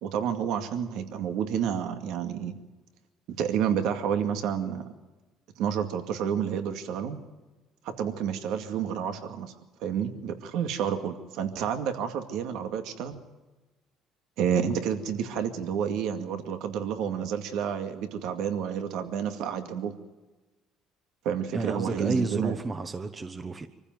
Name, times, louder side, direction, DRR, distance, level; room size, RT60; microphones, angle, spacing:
voice 1, 0.0-2.6 3.4-4.8 5.6-7.2 7.8-9.5 9.8-13.2 14.4-19.9 21.2-22.6, right 8 dB, 75° right, 7 dB, 2.2 m, -30 dB
voice 2, 21.5-23.7, right 3 dB, 25° right, 9 dB, 1.2 m, -31 dB
25.0 x 15.0 x 9.3 m, 1.2 s
cardioid pair, 115°, 0 cm